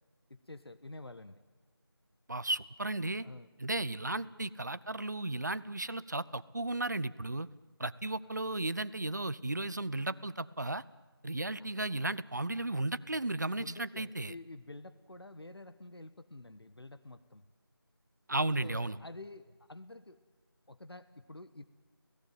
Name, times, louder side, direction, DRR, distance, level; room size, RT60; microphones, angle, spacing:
voice 1, 0.3-1.4 3.2-3.5 12.7-12.8 13.6-17.5 18.6-20.2 20.7-21.6, left 2 dB, 85° left, 11 dB, 1.3 m, -49 dB
voice 2, 2.3-3.3 3.6-7.5 7.8-10.8 11.2-14.3 18.3-19.0, right 2 dB, 45° right, 16 dB, 0.7 m, -34 dB
27.5 x 17.0 x 9.2 m, 1.3 s
figure-of-eight pair, 175°, 13 cm